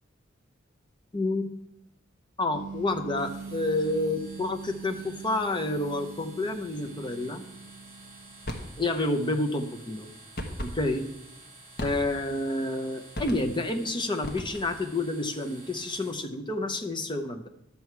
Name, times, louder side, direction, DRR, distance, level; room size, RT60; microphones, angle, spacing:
voice 1, 1.1-1.5 2.4-7.4 8.8-10.1 10.6-11.0 11.8-17.5, left 2 dB, 25° left, 6 dB, 0.8 m, -29 dB
sound 1, 2.5-8.9, right 4 dB, 60° right, 0.3 m, -42 dB
sound 2, 3.1-16.1, right 2 dB, 40° right, 4.3 m, -51 dB
sound 3, 8.4-8.8 10.4-10.8 11.8-12.3 13.2-13.6 14.2-14.8, equal, 50° left, 1.2 m, -36 dB
11.5 x 7.0 x 4.6 m, 0.84 s
head